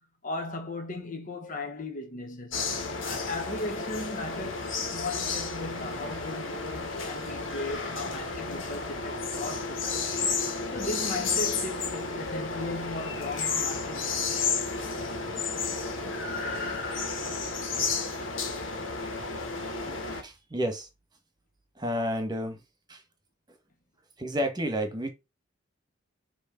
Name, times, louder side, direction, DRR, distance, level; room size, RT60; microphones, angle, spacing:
voice 1, 0.0-2.7 3.0-10.1 10.7-14.5, left 2 dB, 45° left, 1.2 m, -37 dB
sound 1, 2.5-20.2, left 4 dB, 75° left, 1.9 m, -32 dB
voice 2, 20.1-20.9 21.8-22.6 22.9-23.0 23.5-23.6 24.2-25.1, equal, 20° right, 1.5 m, -31 dB
6.5 x 3.2 x 5.2 m
head